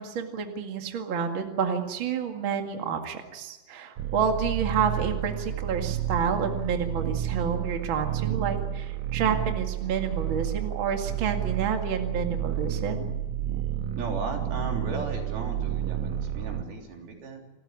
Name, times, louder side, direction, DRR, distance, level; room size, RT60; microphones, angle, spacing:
voice 1, 0.0-13.1, right 6 dB, 85° right, 4 dB, 1.1 m, -29 dB
sound 1, 4.0-16.6, right 11 dB, 70° right, 2.4 m, -30 dB
voice 2, 14.0-17.4, right 3 dB, 50° right, 2 dB, 4.8 m, -36 dB
28.5 x 13.5 x 9.9 m, 1.1 s
omnidirectional pair, 5.9 m